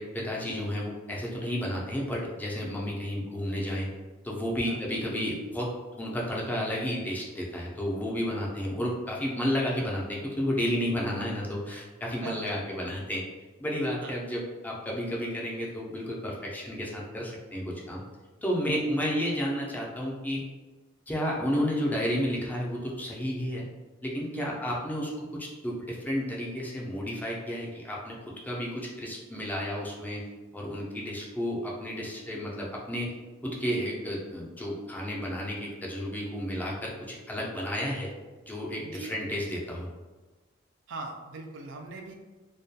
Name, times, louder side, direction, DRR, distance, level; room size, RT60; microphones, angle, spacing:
voice 1, 0.0-3.9 4.2-5.7 6.0-13.2 13.6-18.0 18.4-20.4 21.1-23.7 24.0-30.3 30.5-33.1 33.4-38.1 38.5-39.9, equal, 10° left, -4 dB, 0.4 m, -32 dB
voice 2, 12.2-12.6 14.0-14.2 18.7-18.8 19.1-19.4 24.3-24.6 38.8-39.1 40.9-42.1, right 3 dB, 65° right, 2 dB, 0.4 m, -41 dB
2.2 x 2.2 x 2.6 m, 1.3 s
head